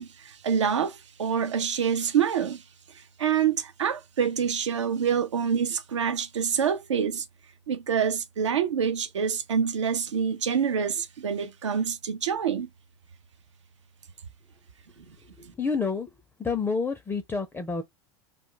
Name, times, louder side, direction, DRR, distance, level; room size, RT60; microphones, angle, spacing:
voice 1, 0.0-2.6 2.9-7.3 7.7-12.7, right 7 dB, 80° right, 0.5 m, -26 dB
voice 2, 15.4-16.1 16.4-17.8, left 4 dB, 10° left, 0.4 m, -29 dB
2.3 x 2.2 x 3.7 m
figure-of-eight pair, 85°, 15 cm